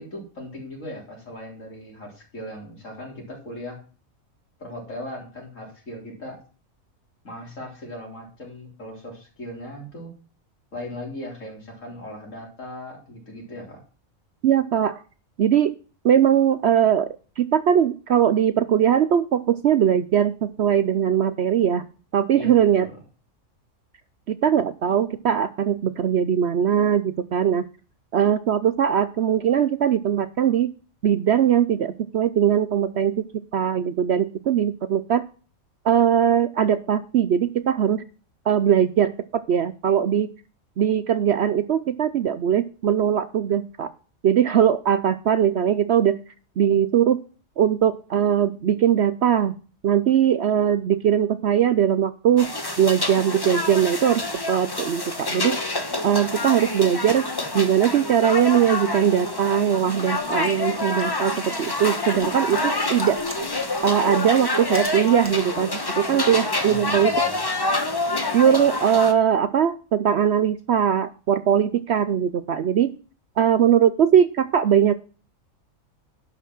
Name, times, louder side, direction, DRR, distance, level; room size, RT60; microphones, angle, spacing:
voice 1, 0.0-3.8 4.6-6.4 7.2-10.1 10.7-13.8 22.3-22.9 66.6-67.4, left 1 dB, 60° left, -1 dB, 4.2 m, -38 dB
voice 2, 14.4-15.0 15.4-15.7 16.0-17.1 17.4-21.8 22.1-22.9 24.3-27.6 28.1-30.7 31.0-33.2 33.5-35.2 35.8-38.0 38.5-39.1 39.5-40.3 40.8-43.9 44.2-46.2 46.6-47.2 47.6-49.5 49.8-52.5 52.8-54.2 54.5-55.6 56.0-57.3 57.5-63.2 63.8-67.1 68.3-72.9 73.4-74.9, right 9 dB, 60° right, 13 dB, 0.7 m, -20 dB
sound 1, 52.4-69.1, left 2 dB, 20° left, 1.1 m, -27 dB
sound 2, 60.1-65.4, right 1 dB, 10° right, 1.8 m, -43 dB
11.0 x 6.0 x 6.0 m, 0.38 s
omnidirectional pair, 1.5 m